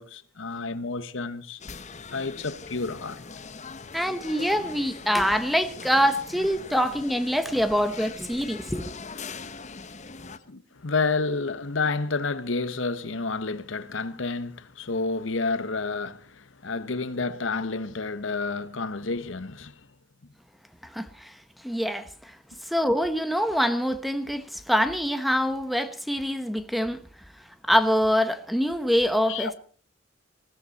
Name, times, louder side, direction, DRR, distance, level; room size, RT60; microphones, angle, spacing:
voice 1, 0.0-1.6 2.1-3.2 10.2-19.9 29.3-29.5, left 3 dB, 75° left, 1.1 m, -30 dB
sound 1, 1.6-10.4, left 4 dB, 40° left, 1.0 m, -41 dB
voice 2, 3.9-8.9 20.8-21.4 21.6-22.4 22.6-27.0 27.7-29.5, equal, ahead, 1.1 m, -25 dB
20.5 x 16.0 x 4.2 m
head